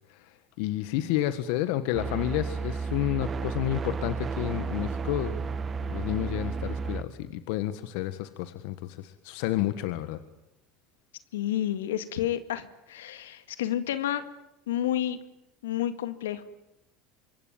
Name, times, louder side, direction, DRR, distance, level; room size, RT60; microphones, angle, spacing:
voice 1, 0.6-5.4 5.8-10.2, left 14 dB, 70° left, 11 dB, 1.6 m, -30 dB
sound 1, 1.9-7.0, right 5 dB, 30° right, 1.7 m, -32 dB
voice 2, 11.3-14.2 14.7-15.2 15.6-16.4, left 11 dB, 85° left, 11 dB, 1.9 m, -30 dB
26.0 x 22.0 x 9.3 m, 0.87 s
hypercardioid pair, 90°, 0 cm